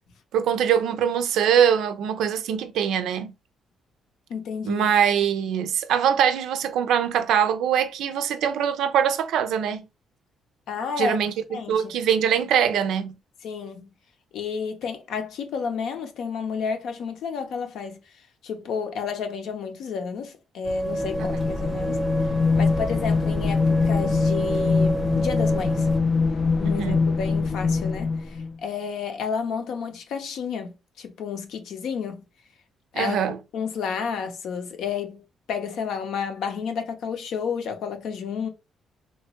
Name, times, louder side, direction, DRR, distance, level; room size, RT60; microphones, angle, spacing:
voice 1, 0.3-3.3 4.6-9.8 11.0-13.1 26.6-27.0 32.9-33.4, right 8 dB, 80° right, 0.4 m, -23 dB
voice 2, 4.3-4.9 10.7-11.2 11.5-11.9 13.4-13.9 14.3-18.0 18.4-22.0 22.6-25.9 26.6-32.2 32.9-33.2 33.5-35.2 35.5-38.5, left 6 dB, 75° left, 0.6 m, -31 dB
sound 1, 20.6-26.0, right 2 dB, 30° right, 0.5 m, -30 dB
sound 2, 20.8-28.5, left 4 dB, 35° left, 0.3 m, -23 dB
2.9 x 2.2 x 2.8 m
cardioid pair, 90°, 0 cm